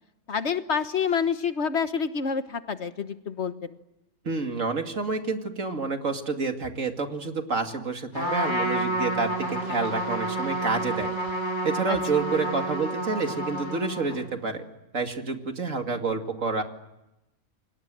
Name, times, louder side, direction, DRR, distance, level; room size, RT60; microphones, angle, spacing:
voice 1, 0.3-3.8 11.9-12.0, left 6 dB, 55° left, 10 dB, 1.5 m, -28 dB
voice 2, 4.2-11.1 11.6-14.6 14.9-16.6, right 4 dB, 70° right, 5 dB, 2.8 m, -29 dB
Trumpet, 8.1-14.3, right 1 dB, 35° left, 7.1 m, -29 dB
29.5 x 25.5 x 7.7 m, 0.93 s
omnidirectional pair, 1.4 m